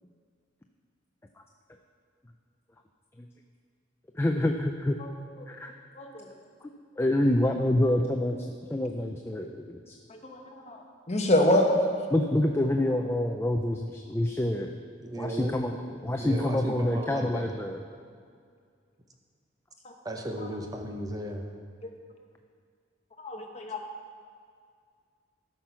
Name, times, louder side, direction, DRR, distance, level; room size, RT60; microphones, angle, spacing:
voice 1, 4.1-5.0 5.5-5.7 6.6-6.7 7.0-9.9 12.1-14.7 15.2-15.8 16.0-17.8, left 1 dB, 10° left, 4 dB, 0.4 m, -27 dB
voice 2, 6.0-6.3 10.2-10.4 10.7-10.8 11.1-11.6 23.2-23.8, left 1 dB, 35° left, 3 dB, 1.0 m, -25 dB
voice 3, 15.0-15.8 16.0-17.5 20.0-21.4, right 1 dB, 20° right, 3 dB, 0.9 m, -35 dB
13.5 x 5.9 x 5.7 m, 2.1 s
head